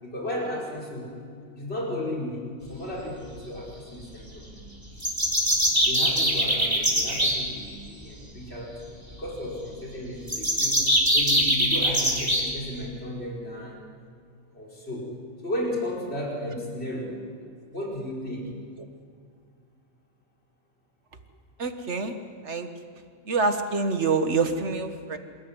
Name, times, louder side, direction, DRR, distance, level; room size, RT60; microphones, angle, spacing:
voice 1, 0.0-1.1 1.6-4.6 5.8-13.8 14.5-15.1 15.4-17.2 17.7-18.5, left 1 dB, 50° left, -2 dB, 5.2 m, -34 dB
sound 1, 5.0-7.4 10.3-12.4, equal, 15° right, 3.9 m, -22 dB
voice 2, 21.6-22.2 22.4-22.7 23.3-25.2, right 4 dB, 60° right, 7 dB, 1.8 m, -26 dB
27.0 x 14.0 x 9.8 m, 2.3 s
omnidirectional pair, 1.4 m